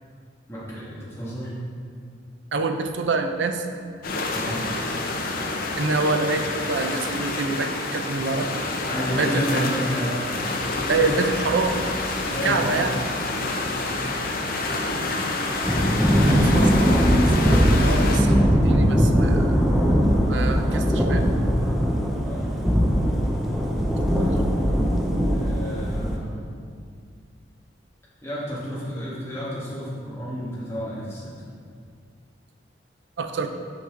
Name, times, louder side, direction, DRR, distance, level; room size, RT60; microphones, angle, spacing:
voice 1, 0.5-1.5 4.3-4.7 8.9-10.3 11.0-11.3 12.3-12.9 13.4-14.4 17.7-18.1 22.2-22.6 24.1-24.4 25.3-26.5 28.2-31.4, equal, 15° left, -9 dB, 1.7 m, -31 dB
voice 2, 2.5-3.7 5.8-8.7 9.1-9.7 10.8-11.9 12.3-13.0 16.4-17.1 17.4-19.6 20.3-21.3 24.1-24.3 33.2-33.5, right 3 dB, 75° right, 6 dB, 0.5 m, -26 dB
sound 1, 4.0-18.2, left 2 dB, 50° left, 0.6 m, -28 dB
Thunder / Rain, 15.6-26.2, equal, ahead, 0.5 m, -20 dB
6.0 x 5.9 x 3.7 m, 2.2 s
head